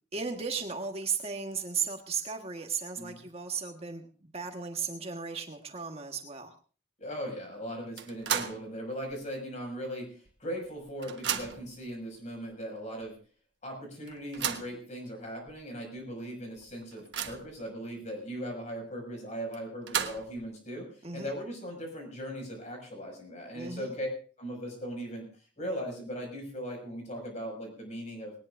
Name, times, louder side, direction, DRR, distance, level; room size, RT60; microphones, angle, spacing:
voice 1, 0.1-6.5 21.0-21.3 23.5-24.0, right 5 dB, 35° right, 4 dB, 1.5 m, -35 dB
voice 2, 7.0-13.2 13.6-24.1 24.4-25.3 25.6-28.3, equal, 45° left, 2 dB, 6.3 m, -39 dB
sound 1, 8.0-8.7 9.1-9.2 10.3-10.4 10.6-11.8 12.5-12.6 13.0-13.1 14.1-14.8 15.5-15.6 16.0-16.1 16.6-17.6 19.5-20.4, right 8 dB, 85° right, 1.3 m, -34 dB
20.0 x 19.0 x 2.6 m, 0.38 s
head